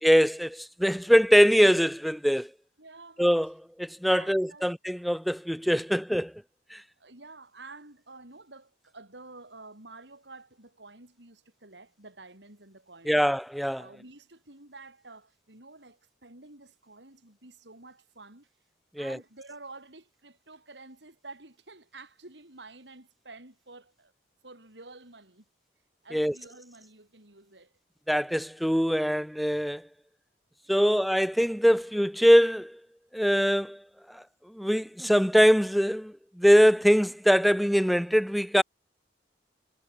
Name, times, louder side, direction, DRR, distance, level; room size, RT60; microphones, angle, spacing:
voice 1, 0.0-2.5 3.2-3.5 3.8-6.3 6.7-6.8 13.1-13.8 19.0-19.2 26.1-26.3 28.1-29.8 30.7-32.8 33.1-33.8 34.1-34.2 34.5-38.6, equal, ahead, 0.4 m, -23 dB
voice 2, 2.8-3.2 4.1-4.7 7.0-13.2 13.8-18.5 19.0-24.1 24.4-25.4 26.0-27.7 30.6-31.0, right 3 dB, 80° right, 5.6 m, -49 dB
head